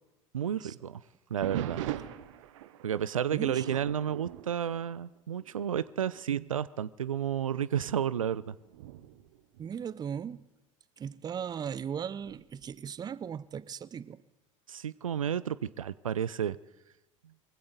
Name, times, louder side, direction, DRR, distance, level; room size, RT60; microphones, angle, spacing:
voice 1, 0.3-1.0 1.3-1.8 2.8-8.5 14.7-16.6, right 9 dB, 80° right, 0.4 m, -31 dB
sound 1, 1.4-5.5 5.9-6.2 6.8-6.9 7.7-10.4 12.2-12.7, right 12 dB, 65° right, 0.9 m, -41 dB
voice 2, 3.3-3.6 9.6-10.4 11.0-14.2, right 8 dB, 25° right, 0.5 m, -37 dB
22.5 x 16.0 x 3.9 m
figure-of-eight pair, 75°, 17 cm